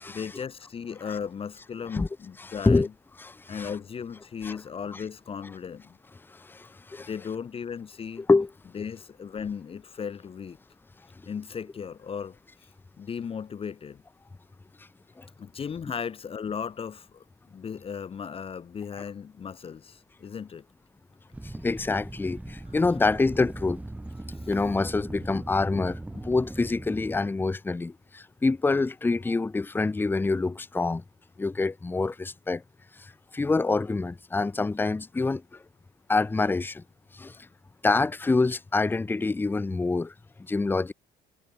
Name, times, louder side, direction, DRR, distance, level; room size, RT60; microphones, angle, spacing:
voice 1, 0.1-2.9 3.5-6.0 7.1-8.2 8.7-10.6 11.3-12.4 13.0-14.0 15.4-17.2 17.5-20.6, left 7 dB, 35° left, 1.0 m, -36 dB
voice 2, 2.4-2.9 3.2-3.7 4.4-4.6 4.9-5.0 6.3-7.1 8.2-8.5 15.2-15.3 21.4-23.8 24.5-31.0 31.4-32.6 32.9-35.6 36.1-36.8 37.1-37.4 37.8-40.1 40.4-40.9, left 3 dB, 10° left, 0.6 m, -26 dB
sound 1, 21.3-27.2, right 1 dB, 10° right, 3.2 m, -39 dB
cardioid pair, 110°, 17 cm